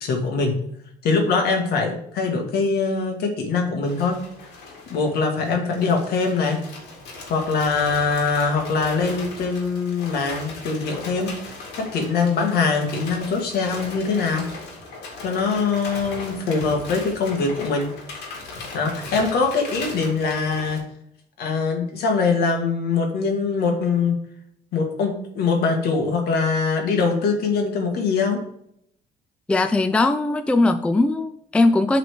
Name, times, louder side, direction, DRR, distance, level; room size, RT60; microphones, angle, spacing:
voice 1, 0.0-0.6 1.0-4.2 4.9-6.6 7.3-11.3 11.8-14.5 15.2-17.9 18.7-20.8 21.4-24.2 24.7-28.4, left 4 dB, 70° left, 3 dB, 1.7 m, -22 dB
sound 1, 3.9-20.8, left 3 dB, 85° left, 2.1 m, -38 dB
voice 2, 29.5-32.0, left 2 dB, 5° left, 10 dB, 0.4 m, -19 dB
8.0 x 3.9 x 4.9 m, 0.72 s
cardioid pair, 110°, 17 cm